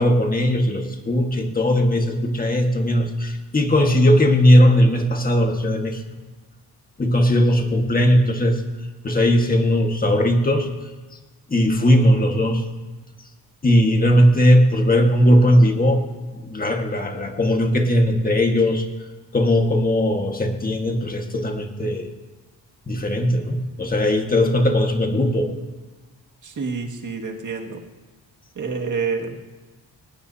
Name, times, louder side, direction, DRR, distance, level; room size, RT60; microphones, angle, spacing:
voice 1, 0.0-6.0 7.0-8.6 9.0-10.7 11.5-12.7 13.6-16.1 16.3-18.9 19.3-22.1 22.9-25.6, equal, 20° left, 3 dB, 1.7 m, -18 dB
voice 2, 26.4-27.8 28.6-29.4, right 5 dB, 50° right, 1 dB, 2.2 m, -28 dB
23.0 x 19.0 x 2.9 m, 1.2 s
cardioid pair, 140°, 40 cm